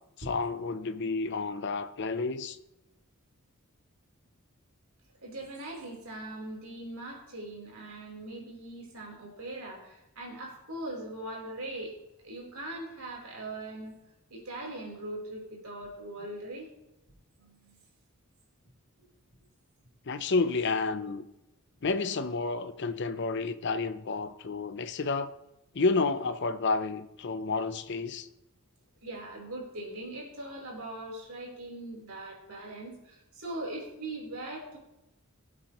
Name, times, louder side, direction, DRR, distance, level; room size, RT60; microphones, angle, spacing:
voice 1, 0.3-2.6 20.1-21.2 21.8-25.3 25.7-28.3, left 3 dB, 50° left, 0.6 m, -30 dB
voice 2, 5.2-11.9 12.2-13.9 14.3-16.7 17.4-17.8 19.0-19.1 29.0-34.8, right 1 dB, 85° right, 3.9 m, -41 dB
17.5 x 7.4 x 3.0 m
head